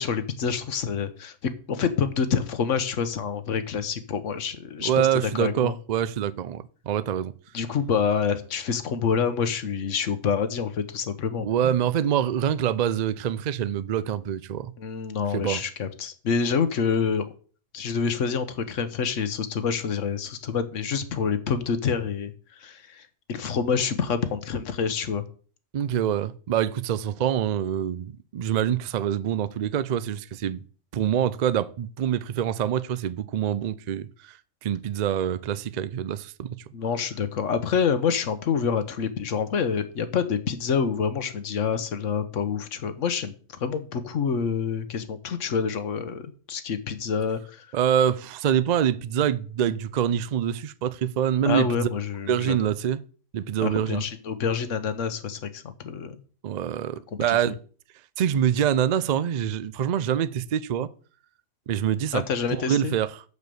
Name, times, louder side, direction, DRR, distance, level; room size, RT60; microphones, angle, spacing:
voice 1, 0.0-5.1 5.3-5.7 7.5-11.5 14.8-17.3 17.7-25.2 36.7-47.7 51.4-52.6 53.6-56.2 57.1-57.6 62.1-62.9, left 6 dB, 70° left, 1.3 m, -27 dB
voice 2, 4.8-7.3 11.4-14.7 15.3-15.6 25.7-30.6 30.9-34.4 34.6-36.5 47.7-51.9 52.3-53.0 53.3-54.0 56.4-57.5 58.2-60.9 61.7-62.2 62.5-63.1, right 9 dB, 65° right, 0.4 m, -25 dB
6.7 x 6.7 x 6.8 m
omnidirectional pair, 1.3 m